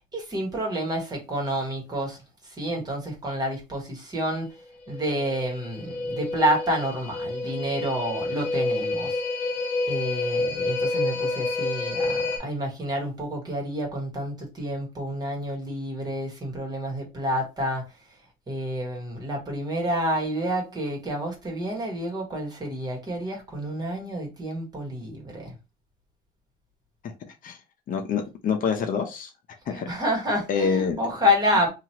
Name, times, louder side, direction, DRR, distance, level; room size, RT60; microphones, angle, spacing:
voice 1, 0.1-2.2 2.6-4.5 4.9-9.1 9.9-17.8 18.5-25.5 29.7-31.7, equal, 25° right, 1.4 m, -29 dB
sound 1, 4.9-12.4, left 2 dB, 35° left, 1.4 m, -29 dB
voice 2, 27.9-29.3 29.7-29.9 30.5-31.0, left 6 dB, 55° left, 0.6 m, -26 dB
2.9 x 2.5 x 2.9 m
cardioid pair, 110°, 17 cm